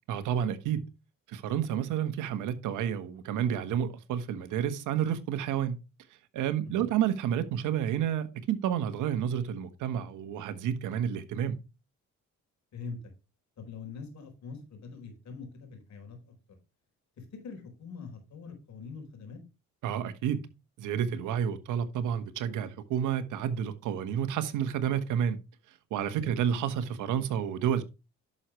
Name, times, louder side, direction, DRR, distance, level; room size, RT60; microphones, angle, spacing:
voice 1, 0.1-0.9 1.3-5.8 6.3-11.6 19.8-20.5 20.8-25.4 25.9-27.8, right 9 dB, 90° right, 1.3 m, -30 dB
voice 2, 12.7-13.1 13.6-16.4 17.2-19.4 26.2-26.4, left 5 dB, 65° left, 4.4 m, -44 dB
11.0 x 6.5 x 3.1 m
cardioid pair, 90°, 30 cm